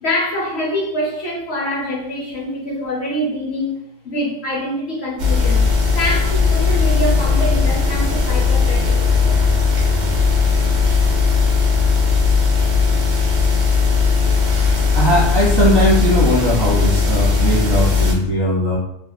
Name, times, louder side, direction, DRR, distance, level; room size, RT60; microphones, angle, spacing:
voice 1, 0.0-5.7 5.9-9.4, equal, 65° left, -3 dB, 0.9 m, -25 dB
sound 1, 5.2-18.1, left 4 dB, 50° right, 0.6 m, -17 dB
voice 2, 14.9-18.8, right 1 dB, 20° right, -8 dB, 0.8 m, -18 dB
2.9 x 2.5 x 2.2 m, 0.76 s
omnidirectional pair, 1.3 m